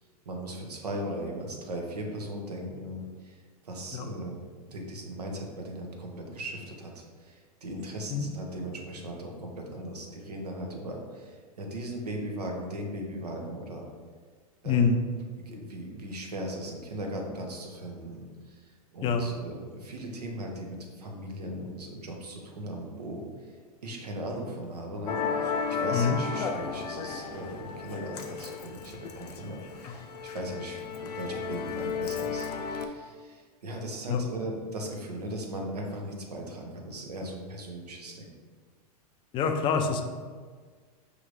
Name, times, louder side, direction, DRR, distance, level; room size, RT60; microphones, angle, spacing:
voice 1, 0.3-13.9 14.6-14.9 15.4-23.6 23.8-38.3, right 1 dB, 90° right, 1 dB, 0.8 m, -38 dB
voice 2, 14.6-15.0 19.0-19.3 25.9-26.2 34.1-34.2 39.3-40.0, left 5 dB, 25° left, 5 dB, 0.4 m, -25 dB
Musical instrument, 25.1-32.9, left 5 dB, 85° left, 0.5 m, -34 dB
4.9 x 3.0 x 2.5 m, 1.6 s
hypercardioid pair, 105°, 20 cm